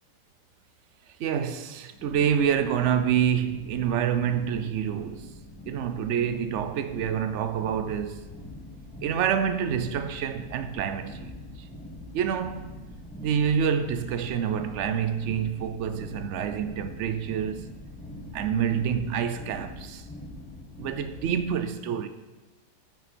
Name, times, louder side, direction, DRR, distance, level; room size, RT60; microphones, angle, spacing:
voice 1, 1.2-5.3 5.7-8.3 9.0-11.4 12.1-12.7 13.2-17.7 18.3-20.0 20.8-22.1, right 8 dB, 75° right, 0.6 m, -27 dB
sound 1, 1.9-21.4, left 1 dB, 5° left, 1.6 m, -43 dB
8.7 x 8.0 x 4.3 m
omnidirectional pair, 1.8 m